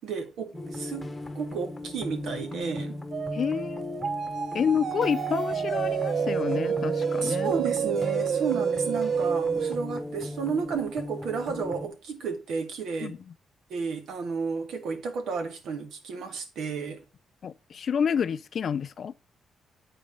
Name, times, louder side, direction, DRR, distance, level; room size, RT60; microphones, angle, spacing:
voice 1, 0.0-3.0 7.2-13.2 13.7-17.0, right 5 dB, 75° right, 1.6 m, -32 dB
sound 1, 0.5-11.9, left 1 dB, 5° left, 1.1 m, -37 dB
sound 2, 3.1-9.8, right 7 dB, 50° right, 0.3 m, -29 dB
voice 2, 3.3-4.1 4.5-7.5 13.0-13.2 17.4-19.1, left 7 dB, 45° left, 0.4 m, -29 dB
8.9 x 4.1 x 5.2 m
cardioid pair, 155°, 0 cm